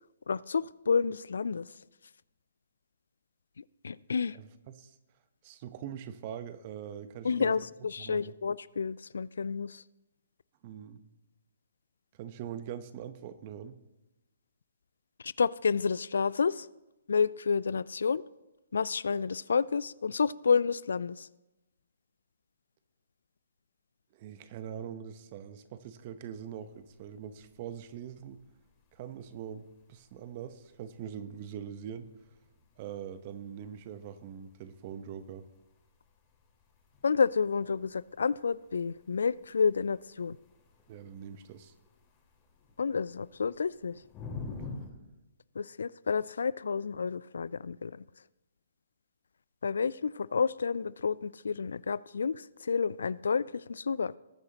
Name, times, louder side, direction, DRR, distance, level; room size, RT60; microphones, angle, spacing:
voice 1, 0.3-1.7 3.8-4.4 7.2-9.8 15.2-16.7 17.1-18.2 18.7-21.3 37.0-40.4 42.8-44.0 45.6-48.0 49.6-54.1, left 5 dB, 70° left, 20 dB, 0.3 m, -30 dB
voice 2, 4.3-5.0 5.4-7.6 8.0-8.3 10.6-11.0 12.2-13.8 24.1-28.4 28.9-32.1 32.8-35.4 40.9-41.7, right 9 dB, 40° right, 12 dB, 0.9 m, -43 dB
sound 1, 26.3-44.9, left 4 dB, 20° left, 2.9 m, -51 dB
20.0 x 9.6 x 2.9 m, 0.99 s
figure-of-eight pair, 130°, 0 cm